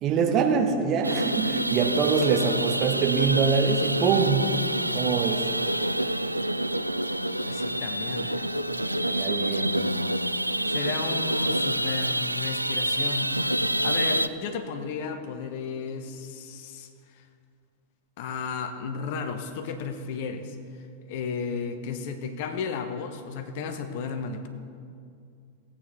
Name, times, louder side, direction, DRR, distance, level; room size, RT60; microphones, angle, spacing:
voice 1, 0.0-4.6 4.9-5.5 9.0-9.8, right 5 dB, 35° right, 4 dB, 1.2 m, -24 dB
sound 1, 1.0-14.3, right 1 dB, 85° right, 0.3 m, -27 dB
voice 2, 7.5-8.5 10.7-13.4 13.8-16.9 17.1-17.2 18.2-20.6 21.1-24.5, left 5 dB, 50° left, 7 dB, 0.9 m, -34 dB
18.0 x 8.6 x 3.3 m, 2.4 s
figure-of-eight pair, 90°, 0 cm